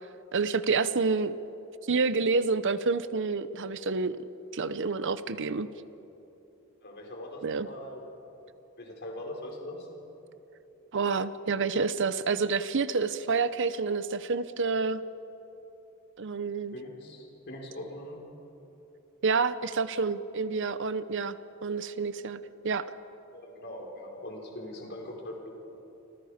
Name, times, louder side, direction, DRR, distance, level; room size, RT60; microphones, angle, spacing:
voice 1, 0.3-1.3 1.8-4.2 4.5-5.7 7.4-7.7 10.9-15.0 16.2-16.8 19.2-21.4 21.6-22.9, right 4 dB, 60° right, 13 dB, 0.8 m, -28 dB
voice 2, 6.8-8.0 8.8-9.9 16.7-18.2 23.3-25.7, left 1 dB, 55° left, -1 dB, 5.0 m, -41 dB
28.5 x 26.0 x 5.1 m, 3.0 s
head